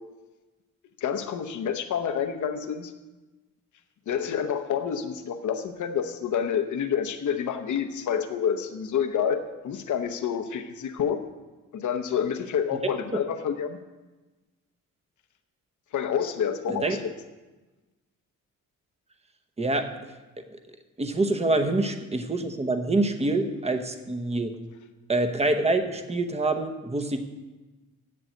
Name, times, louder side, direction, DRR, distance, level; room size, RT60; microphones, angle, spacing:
voice 1, 1.0-2.9 4.1-11.2 11.7-13.8 15.9-17.0, left 8 dB, 65° left, 6 dB, 0.9 m, -28 dB
voice 2, 19.6-19.9 21.0-24.5 25.1-27.2, right 2 dB, 20° right, 7 dB, 1.0 m, -26 dB
7.8 x 7.7 x 7.7 m, 1.2 s
cardioid pair, 115°, 32 cm